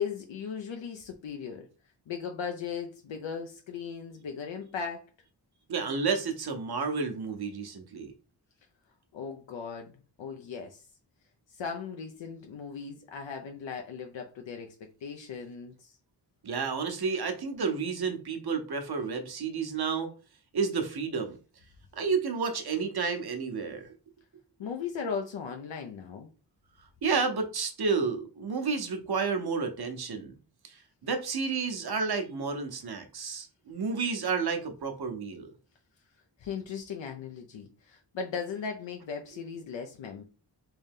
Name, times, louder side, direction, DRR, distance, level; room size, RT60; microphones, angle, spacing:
voice 1, 0.0-1.7 2.1-5.1 9.1-10.8 11.5-14.7 15.0-16.0 24.6-26.3 36.4-40.2, left 6 dB, 80° left, 0.6 m, -37 dB
voice 2, 5.7-8.1 16.4-20.1 20.5-21.4 22.0-23.9 27.0-30.3 30.6-35.5, right 5 dB, 60° right, 0.9 m, -31 dB
3.4 x 2.7 x 3.6 m
cardioid pair, 55°, 44 cm